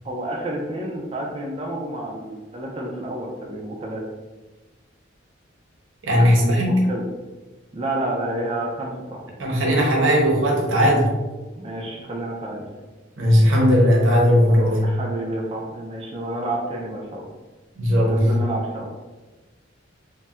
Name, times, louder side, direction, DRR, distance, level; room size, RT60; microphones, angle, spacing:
voice 1, 0.0-4.0 6.1-7.0 7.7-9.3 11.6-12.6 14.5-17.2 18.1-19.1, right 1 dB, 30° right, -2 dB, 0.3 m, -30 dB
voice 2, 6.0-6.8 9.4-11.1 13.2-14.8 17.8-18.3, equal, 80° right, -2 dB, 0.7 m, -17 dB
4.0 x 2.0 x 2.3 m, 1.2 s
head